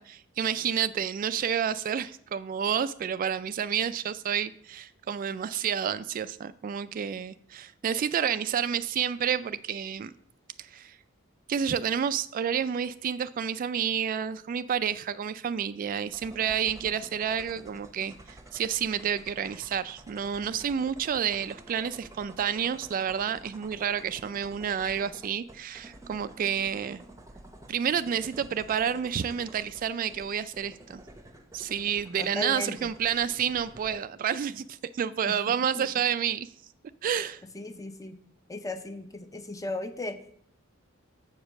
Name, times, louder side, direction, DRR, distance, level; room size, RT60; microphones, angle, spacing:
voice 1, 0.0-10.1 10.6-11.0 11.5-27.0 27.7-31.0 31.5-36.5 37.0-37.4, right 8 dB, 45° right, 0.3 m, -30 dB
sound 1, 16.1-34.0, right 1 dB, 15° right, 0.8 m, -50 dB
voice 2, 32.2-32.9 35.3-35.4 35.8-35.9 37.5-38.2 38.5-40.2, left 2 dB, 15° left, 0.7 m, -36 dB
7.2 x 5.1 x 7.2 m
head